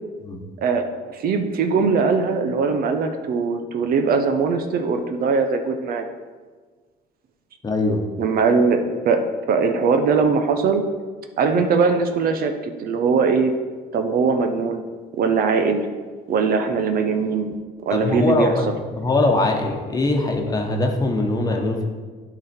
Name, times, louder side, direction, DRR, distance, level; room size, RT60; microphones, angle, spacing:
voice 1, 0.6-6.1 8.2-9.2 9.5-10.8 11.4-13.5 13.9-14.8 15.2-15.9 16.3-17.5 17.8-18.6, right 5 dB, 60° right, 6 dB, 0.8 m, -21 dB
voice 2, 7.6-8.0 17.9-18.7 19.0-21.8, left 2 dB, 20° left, 2 dB, 1.1 m, -21 dB
11.0 x 4.1 x 4.4 m, 1.4 s
cardioid pair, 110°, 17 cm